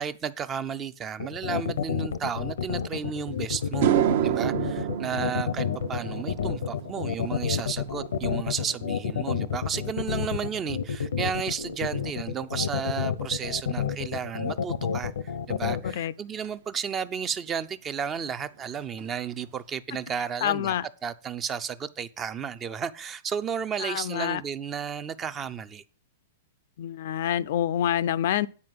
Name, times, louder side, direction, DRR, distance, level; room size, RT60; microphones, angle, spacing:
voice 1, 0.0-3.9 4.2-20.7 21.0-25.8, right 7 dB, 20° right, 0.5 m, -33 dB
sound 1, 1.2-15.9, left 7 dB, 90° left, 0.8 m, -29 dB
sound 2, 3.1-3.2 3.6-12.1 12.4-12.8 16.4-16.5 18.2-18.3 18.6-18.7 19.0-19.5, right 11 dB, 55° right, 0.8 m, -31 dB
voice 2, 20.4-20.9 23.8-24.4 26.8-28.5, left 11 dB, 55° left, 0.4 m, -27 dB
9.5 x 4.6 x 7.6 m
hypercardioid pair, 160°, 0 cm